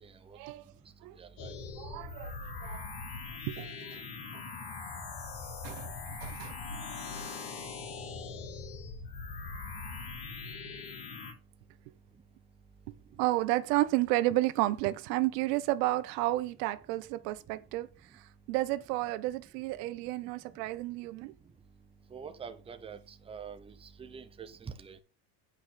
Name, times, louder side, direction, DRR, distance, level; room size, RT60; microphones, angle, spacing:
voice 1, 0.0-0.4 1.2-1.5 22.1-25.0, right 6 dB, 10° right, 0.8 m, -46 dB
sound 1, 1.4-11.3, left 4 dB, 60° left, 3.2 m, -41 dB
voice 2, 1.8-2.9 3.5-4.4 5.6-6.6 13.2-21.3, right 17 dB, 85° right, 0.9 m, -32 dB
8.8 x 5.0 x 5.6 m
cardioid pair, 150°, 46 cm